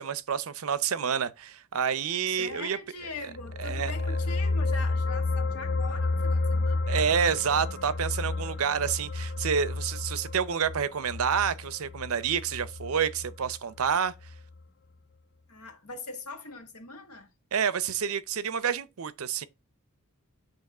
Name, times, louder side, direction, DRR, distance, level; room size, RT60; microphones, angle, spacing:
voice 1, 0.0-2.8 3.6-3.9 6.9-14.1 17.5-19.5, right 7 dB, 65° right, 0.6 m, -28 dB
voice 2, 2.3-7.1 15.5-17.3, left 3 dB, 85° left, 1.5 m, -42 dB
sound 1, 3.2-13.9 14.2-14.4, left 3 dB, 50° left, 0.4 m, -31 dB
8.9 x 3.0 x 5.9 m
head